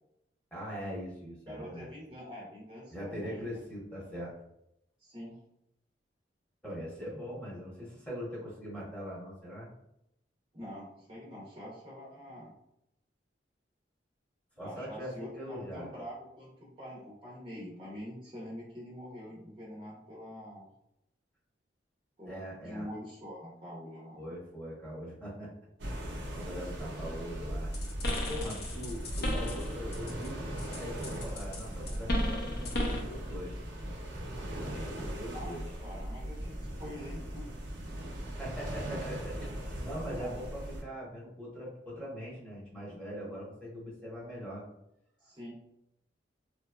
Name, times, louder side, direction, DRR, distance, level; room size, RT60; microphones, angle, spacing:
voice 1, 0.5-1.9 2.9-4.3 6.6-9.7 14.6-15.9 22.3-22.9 24.1-25.5 26.3-27.7 28.3-33.6 34.6-35.6 38.2-44.6, equal, 5° left, -6 dB, 1.0 m, -41 dB
voice 2, 1.5-3.4 5.0-5.4 10.5-12.5 14.6-20.7 22.2-24.3 28.2-28.5 35.3-37.5 40.2-40.3 45.2-45.5, equal, 30° right, -5 dB, 0.6 m, -45 dB
sound 1, 25.8-40.8, right 1 dB, 75° right, 0.6 m, -39 dB
sound 2, 27.7-30.3 30.6-33.1, left 1 dB, 60° left, 0.6 m, -34 dB
3.0 x 2.3 x 2.2 m, 0.82 s
head